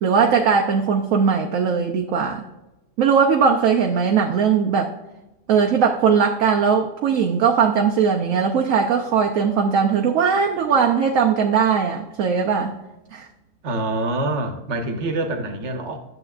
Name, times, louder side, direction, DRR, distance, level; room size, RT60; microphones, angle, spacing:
voice 1, 0.0-2.5 3.0-4.9 5.5-12.7 13.1-13.3, right 6 dB, 65° right, 3 dB, 1.0 m, -19 dB
voice 2, 13.6-16.0, right 2 dB, 50° right, 5 dB, 1.2 m, -25 dB
11.0 x 7.2 x 2.4 m, 0.99 s
omnidirectional pair, 1.7 m